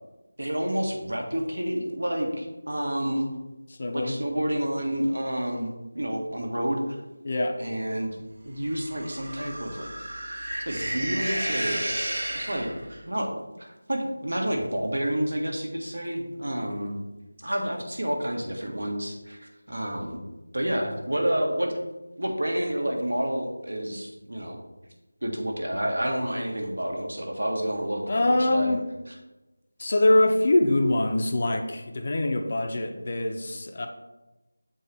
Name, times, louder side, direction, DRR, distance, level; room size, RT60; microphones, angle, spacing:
voice 1, 0.4-3.3 3.9-7.0 7.6-8.2 8.4-10.4 10.6-11.9 12.3-12.7 13.0-13.3 13.6-17.0 17.4-20.2 20.5-21.7 22.2-24.6 25.2-28.7 29.1-29.2, right 1 dB, 80° right, 1 dB, 1.6 m, -29 dB
voice 2, 3.8-4.2 7.2-7.6 28.1-28.8 29.8-33.9, left 1 dB, 25° left, 4 dB, 0.4 m, -24 dB
sound 1, 8.7-13.0, right 1 dB, 50° right, 1.3 m, -32 dB
7.4 x 4.6 x 3.4 m, 1.1 s
figure-of-eight pair, 180°, 0 cm